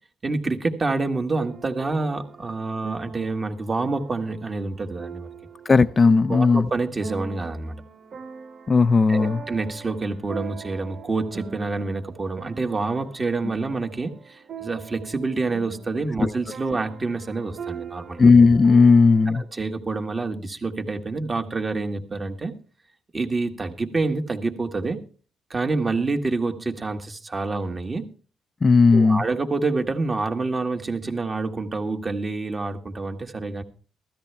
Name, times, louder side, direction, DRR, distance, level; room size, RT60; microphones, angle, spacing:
voice 1, 0.2-5.3 6.3-7.7 9.1-18.2 19.3-22.5 23.1-25.0 25.5-28.1 28.9-33.6, right 3 dB, 30° right, 1.9 m, -27 dB
sound 1, 1.3-19.4, right 6 dB, 55° right, 2.2 m, -42 dB
voice 2, 5.7-6.7 8.7-9.4 16.2-16.3 18.2-19.4 28.6-29.2, left 4 dB, 30° left, 0.5 m, -16 dB
16.0 x 13.0 x 3.4 m
cardioid pair, 90°, 0 cm